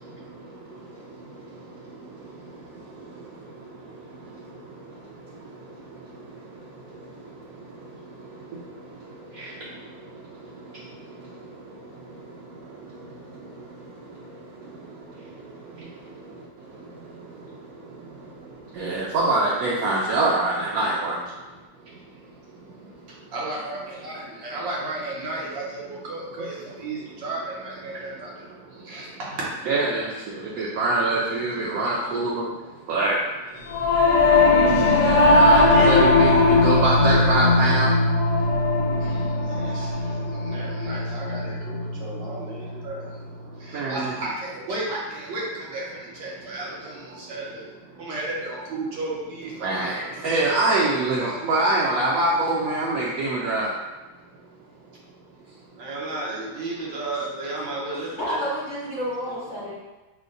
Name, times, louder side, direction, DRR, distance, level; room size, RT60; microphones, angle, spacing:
voice 1, 18.8-21.2 29.7-30.1 30.6-32.4 32.9-33.2 35.0-37.9 43.7-44.2 49.6-53.7, right 2 dB, 70° right, -5 dB, 0.9 m, -24 dB
voice 2, 23.3-28.4 28.8-29.5 39.0-43.0 43.6-47.7 48.0-50.1 55.8-58.4, right 2 dB, 90° right, -5 dB, 1.7 m, -33 dB
Singing / Musical instrument, 33.7-43.2, left 2 dB, 80° left, 1.3 m, -19 dB
voice 3, 57.9-59.7, equal, 40° left, -8 dB, 0.7 m, -30 dB
6.1 x 2.1 x 2.6 m, 1.1 s
omnidirectional pair, 1.9 m